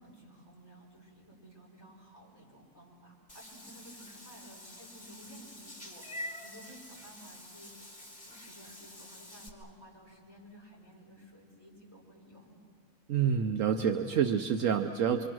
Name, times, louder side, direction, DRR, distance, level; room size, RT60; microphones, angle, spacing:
voice 1, 0.0-12.5, equal, 15° right, -4 dB, 6.1 m, -54 dB
Meow / Water / Bathtub (filling or washing), 3.3-9.5, left 1 dB, 5° left, 3.0 m, -47 dB
voice 2, 13.1-15.3, right 7 dB, 70° right, 6 dB, 1.1 m, -28 dB
27.0 x 25.0 x 6.2 m, 2.4 s
omnidirectional pair, 1.5 m